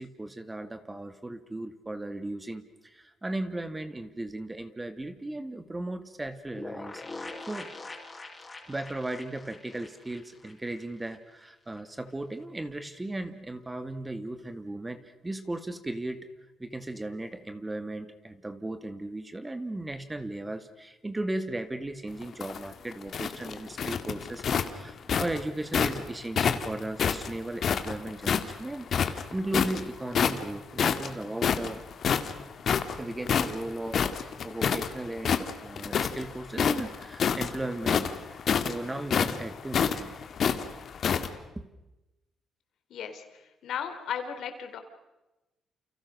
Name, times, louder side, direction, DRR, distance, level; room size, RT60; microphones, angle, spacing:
voice 1, 0.0-7.7 8.7-16.3 16.6-31.8 33.0-40.2 41.5-41.7, right 2 dB, 15° right, 9 dB, 2.4 m, -36 dB
sound 1, 6.6-11.2 11.4-11.5 11.8-11.9, left 2 dB, 20° left, 5.6 m, -43 dB
sound 2, 22.2-26.0 26.4-28.5 28.9-29.8 30.1-30.5 30.8-34.9 35.2-36.2 36.5-41.3, left 7 dB, 55° left, 2.2 m, -27 dB
voice 2, 42.9-43.2 43.6-44.8, left 8 dB, 75° left, 7 dB, 3.9 m, -35 dB
29.5 x 29.5 x 6.4 m, 1.0 s
cardioid pair, 90°, 0 cm